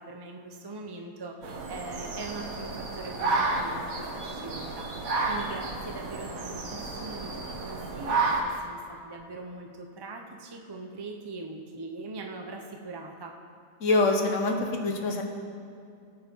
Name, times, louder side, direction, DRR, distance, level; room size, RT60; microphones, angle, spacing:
voice 1, 0.0-13.3, right 3 dB, 30° right, 2 dB, 0.4 m, -41 dB
sound 1, 1.4-8.4, right 3 dB, 60° right, 1.7 m, -31 dB
voice 2, 13.8-15.2, left 2 dB, 55° left, 3 dB, 1.4 m, -25 dB
18.5 x 7.4 x 4.5 m, 2.5 s
omnidirectional pair, 1.7 m